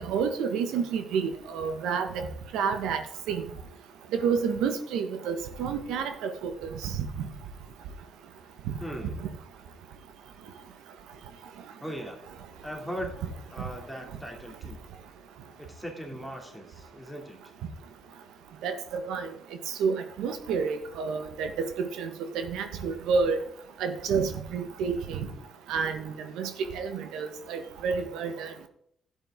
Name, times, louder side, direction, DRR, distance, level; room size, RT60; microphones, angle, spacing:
voice 1, 0.0-2.3 2.5-3.0 3.3-3.4 4.1-6.9 7.2-7.3 18.6-19.3 19.8-21.5 21.8-23.4 23.8-25.3 25.7-28.5, right 5 dB, 90° right, 8 dB, 1.4 m, -29 dB
voice 2, 8.8-9.2 11.8-12.2 12.6-13.2 13.5-14.8 15.6-17.4, equal, ahead, 1 dB, 2.8 m, -39 dB
11.5 x 8.9 x 3.8 m, 0.69 s
cardioid pair, 90°, 0 cm